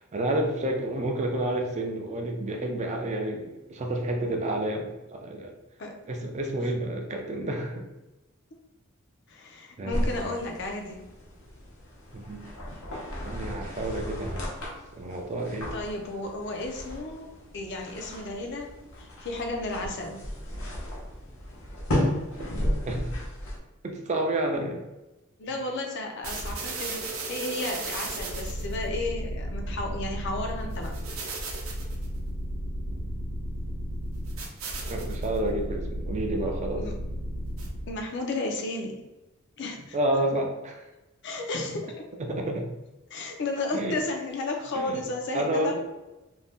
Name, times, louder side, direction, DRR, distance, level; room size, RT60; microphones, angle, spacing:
voice 1, 0.1-5.5 6.1-7.9 9.8-10.4 12.1-12.4 13.2-14.5 14.9-15.7 22.0-22.6 22.9-23.2 23.8-24.8 34.9-36.9 39.9-40.9 42.2-42.7 43.7-44.0 44.7-45.0 45.3-45.8, right 1 dB, 35° right, 3 dB, 0.4 m, -30 dB
voice 2, 9.3-11.0 15.7-17.3 17.5-18.7 19.0-20.2 25.4-30.9 36.8-36.9 37.9-39.0 39.6-40.0 41.2-42.0 43.1-45.8, left 2 dB, 55° left, 2 dB, 0.5 m, -33 dB
sound 1, 9.9-23.6, equal, 80° left, 0.8 m, -34 dB
sound 2, 26.2-38.0, right 1 dB, 80° right, 0.6 m, -34 dB
2.6 x 2.1 x 3.4 m, 1.0 s
head